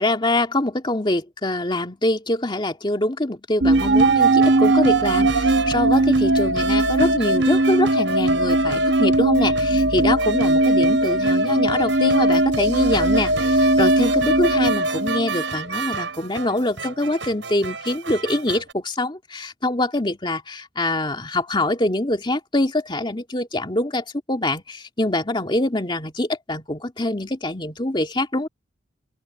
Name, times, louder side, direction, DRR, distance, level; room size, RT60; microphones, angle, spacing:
voice 1, 0.0-28.5, left 1 dB, 25° left, 2.4 m, -24 dB
sound 1, 3.6-15.7, right 2 dB, 65° right, 1.1 m, -19 dB
sound 2, 3.7-18.7, right 5 dB, 80° right, 6.4 m, -32 dB
open air
head